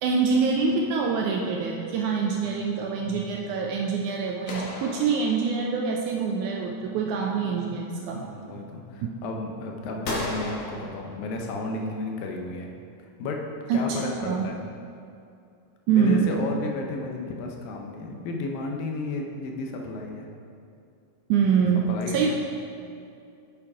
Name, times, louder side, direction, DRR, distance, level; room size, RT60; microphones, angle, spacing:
voice 1, 0.0-8.3 13.7-14.5 15.9-16.3 21.3-21.9 22.1-22.3, right 5 dB, 80° right, 0 dB, 1.8 m, -25 dB
sound 1, 4.5-5.9 10.0-11.6, left 1 dB, 50° left, 2.1 m, -35 dB
voice 2, 7.4-7.8 8.2-12.7 13.2-13.4 13.7-14.6 15.9-20.3 21.6-22.3, left 3 dB, 85° left, 1 dB, 2.6 m, -33 dB
7.3 x 7.3 x 4.7 m, 2.5 s
omnidirectional pair, 4.0 m